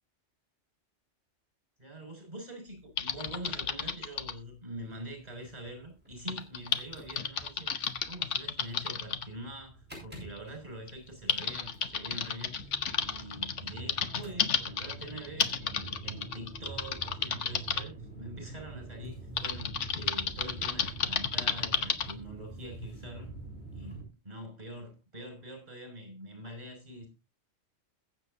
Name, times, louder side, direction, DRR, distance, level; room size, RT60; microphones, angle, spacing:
voice 1, 1.8-23.3 23.7-27.1, right 1 dB, 35° right, 4 dB, 6.2 m, -45 dB
Typing, 3.0-4.4 6.3-9.3 10.3-10.4 10.9-17.8 19.4-22.1, left 6 dB, 90° left, 1.3 m, -32 dB
sound 1, 4.7-24.0, right 2 dB, 10° right, 7.0 m, -47 dB
21.5 x 7.7 x 2.7 m, 0.27 s
omnidirectional pair, 1.2 m